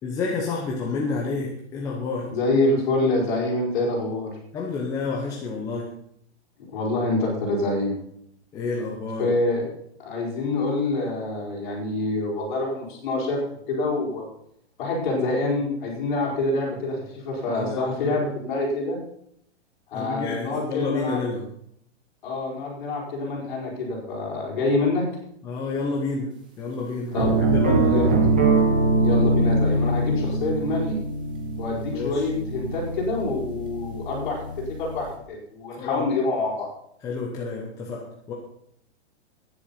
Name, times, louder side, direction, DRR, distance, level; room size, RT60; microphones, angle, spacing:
voice 1, 0.0-2.3 4.5-5.9 8.5-9.3 17.5-18.2 19.9-21.5 25.4-26.3 26.6-28.1 31.9-32.2 35.8-36.1 37.0-38.3, left 4 dB, 10° left, -2 dB, 0.8 m, -29 dB
voice 2, 2.3-4.3 6.7-7.9 9.2-9.6 10.1-13.4 13.7-14.3 14.8-19.0 19.9-21.2 22.2-25.0 27.1-27.3 27.9-28.1 29.0-31.0 31.6-34.5 34.8-36.7, left 2 dB, 45° left, -3 dB, 5.5 m, -26 dB
sound 1, 27.1-35.0, right 2 dB, 10° right, 0.4 m, -23 dB
10.5 x 10.5 x 5.7 m, 0.69 s
hypercardioid pair, 175°, 34 cm